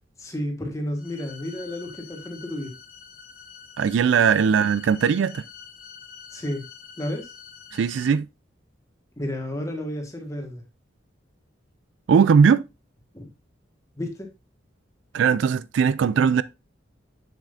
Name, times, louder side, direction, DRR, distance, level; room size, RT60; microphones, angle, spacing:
voice 1, 0.2-2.7 6.3-6.6 7.0-7.3 9.2-10.6 13.1-13.3 14.0-14.3, left 1 dB, 15° left, 1.5 m, -31 dB
sound 1, 1.0-8.1, left 6 dB, 45° left, 2.1 m, -46 dB
voice 2, 3.8-5.4 7.7-8.3 12.1-12.6 15.1-16.4, right 6 dB, 75° right, 0.3 m, -19 dB
7.3 x 7.3 x 2.5 m
head